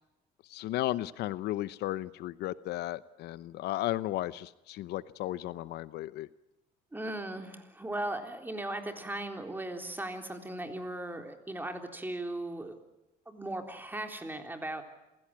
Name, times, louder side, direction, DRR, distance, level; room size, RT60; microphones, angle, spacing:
voice 1, 0.5-6.3, left 15 dB, 80° left, 16 dB, 0.8 m, -34 dB
voice 2, 6.9-12.8 13.3-14.8, right 1 dB, 10° right, 5 dB, 3.8 m, -37 dB
27.5 x 16.5 x 8.9 m, 0.95 s
cardioid pair, 110°, 17 cm